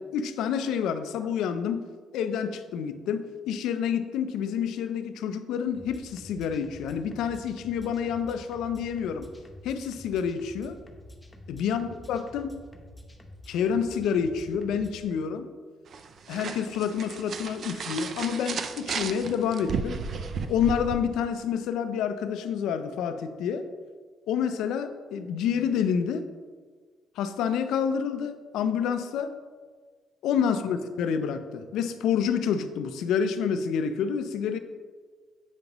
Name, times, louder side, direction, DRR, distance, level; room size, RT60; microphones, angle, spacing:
voice 1, 0.0-1.9 2.1-9.3 9.6-10.8 11.5-12.6 13.5-15.5 16.3-20.0 20.5-23.7 24.3-26.3 27.2-29.3 30.2-34.6, left 7 dB, 85° left, 9 dB, 0.4 m, -28 dB
sound 1, 5.7-15.0, left 1 dB, 10° left, 0.8 m, -48 dB
sound 2, 15.9-20.9, right 5 dB, 60° right, 0.5 m, -34 dB
8.1 x 5.3 x 3.0 m, 1.5 s
cardioid pair, 90°, 0 cm